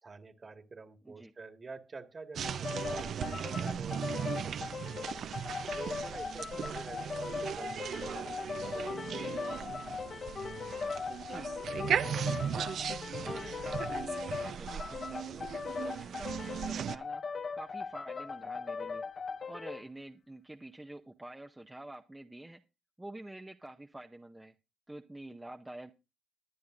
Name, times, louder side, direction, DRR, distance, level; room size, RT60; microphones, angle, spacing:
voice 1, 0.0-5.3 5.7-9.5, right 4 dB, 35° right, 1.7 m, -48 dB
sound 1, 2.3-16.9, right 8 dB, 65° right, 0.7 m, -37 dB
sound 2, 2.4-19.9, left 5 dB, 40° left, 0.8 m, -39 dB
voice 2, 11.3-12.7 13.2-19.0 19.5-22.6 23.0-24.5 24.9-25.9, right 1 dB, 10° right, 0.7 m, -47 dB
20.5 x 10.0 x 2.6 m
cardioid pair, 90°, 0 cm